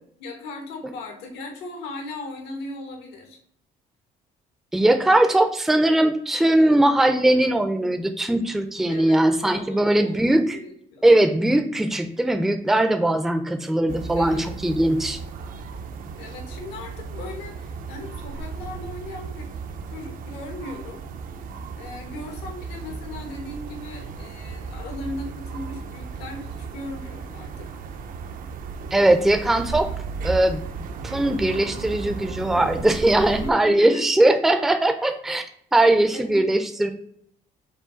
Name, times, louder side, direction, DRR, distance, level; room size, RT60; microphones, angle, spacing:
voice 1, 0.2-3.4 8.9-11.2 14.1-14.5 16.2-19.5 19.9-21.0 21.8-27.7 33.4-34.1 36.1-36.5, left 2 dB, 90° left, 2 dB, 1.2 m, -37 dB
voice 2, 4.7-10.6 11.0-15.2 28.9-29.9 30.2-30.6 31.0-35.4 35.7-36.9, right 1 dB, ahead, 7 dB, 0.4 m, -20 dB
sound 1, 13.9-33.5, right 5 dB, 55° right, 0.5 m, -35 dB
4.8 x 2.3 x 3.8 m, 0.67 s
cardioid pair, 110°, 17 cm